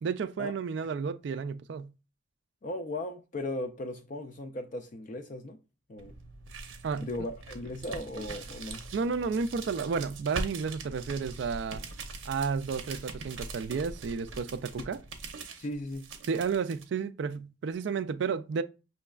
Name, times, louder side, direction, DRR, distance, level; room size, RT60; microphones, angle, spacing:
voice 1, 0.0-1.9 6.8-7.1 8.9-11.8 12.2-15.0 16.3-18.6, right 5 dB, 60° right, 0.3 m, -32 dB
voice 2, 2.6-5.6 5.9-6.2 7.0-8.8 15.6-16.1, left 1 dB, 40° left, 0.3 m, -37 dB
sound 1, 6.0-16.8, right 3 dB, 80° right, 0.7 m, -42 dB
5.8 x 3.1 x 2.3 m
head